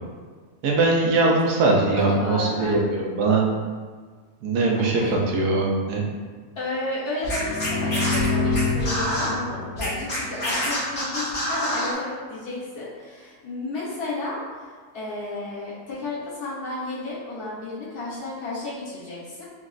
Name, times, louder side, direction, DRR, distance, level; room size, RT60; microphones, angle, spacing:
voice 1, 0.6-3.4 4.4-6.0, right 3 dB, 80° right, -2 dB, 1.3 m, -21 dB
voice 2, 1.9-2.8 4.5-5.2 6.6-19.4, left 2 dB, 75° left, -9 dB, 1.8 m, -33 dB
Scratching (performance technique), 7.2-9.3 9.8-11.9, equal, 55° left, 1.7 m, -27 dB
sound 1, 7.3-11.0, left 3 dB, 40° left, 0.7 m, -27 dB
5.1 x 3.0 x 2.5 m, 1.5 s
omnidirectional pair, 1.7 m